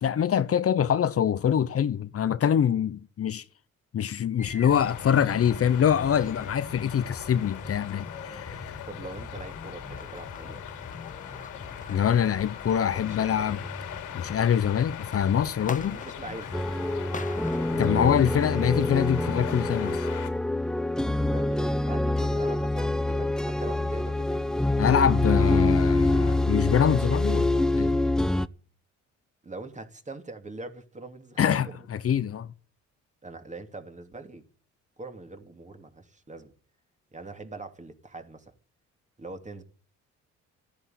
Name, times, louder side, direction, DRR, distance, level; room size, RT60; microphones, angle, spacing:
voice 1, 0.0-3.4 3.9-8.8 11.9-13.6 14.1-16.0 17.7-20.0 24.8-28.0 31.4-32.5, left 8 dB, 50° left, 1.0 m, -24 dB
sound 1, 4.4-19.2, left 4 dB, 25° left, 1.5 m, -42 dB
sound 2, 4.7-20.3, left 11 dB, 90° left, 3.1 m, -41 dB
voice 2, 8.9-10.6 12.9-13.8 15.6-16.5 21.3-24.5 25.3-25.5 29.4-31.9 33.2-34.4 35.0-36.5 37.1-38.5 39.2-39.6, right 2 dB, 25° right, 3.0 m, -42 dB
sound 3, 16.5-28.5, left 2 dB, ahead, 0.7 m, -25 dB
14.5 x 10.5 x 9.4 m
cardioid pair, 90°, 30 cm